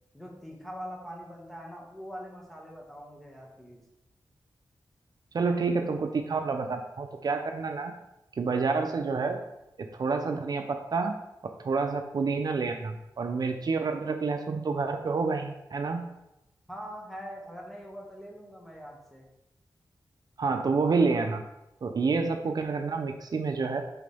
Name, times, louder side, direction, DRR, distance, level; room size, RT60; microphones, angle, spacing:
voice 1, 0.1-3.8 16.7-19.3, equal, 5° left, -2 dB, 1.8 m, -43 dB
voice 2, 5.3-7.9 8.4-9.4 9.8-11.1 11.6-16.1 20.4-21.4 21.8-23.8, right 4 dB, 65° right, 5 dB, 0.6 m, -28 dB
10.5 x 3.8 x 3.5 m, 0.89 s
wide cardioid pair, 90°, 7 cm